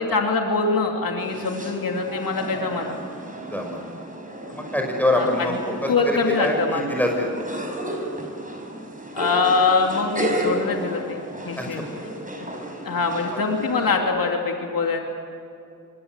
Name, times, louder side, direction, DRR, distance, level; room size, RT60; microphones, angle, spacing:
voice 1, 0.0-3.0 5.1-5.6 5.9-7.0 9.1-11.2 11.4-11.8 12.8-15.0, left 4 dB, 90° left, 2 dB, 2.7 m, -23 dB
sound 1, 1.2-14.0, right 1 dB, 25° right, 5.7 m, -33 dB
voice 2, 3.5-3.8 4.5-5.5 5.8-5.9 6.3-7.5 11.6-12.2 13.3-13.4, left 1 dB, 5° left, 1 dB, 6.2 m, -25 dB
25.5 x 23.0 x 8.1 m, 2.5 s
cardioid pair, 55°, 34 cm